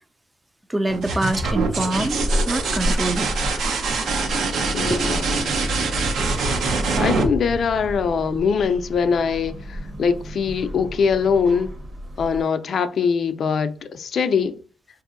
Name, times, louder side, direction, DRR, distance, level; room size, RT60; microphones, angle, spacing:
voice 1, 0.7-3.3 4.9-5.1, right 1 dB, 10° right, 0.4 m, -25 dB
sound 1, 0.9-8.5 10.2-10.8, right 3 dB, 70° right, 0.6 m, -24 dB
sound 2, 1.2-12.4, equal, 45° right, 1.1 m, -32 dB
voice 2, 4.7-5.6 7.0-11.7 12.2-14.6, left 6 dB, 55° left, 0.4 m, -22 dB
4.0 x 2.6 x 2.5 m
cardioid pair, 90°, 0 cm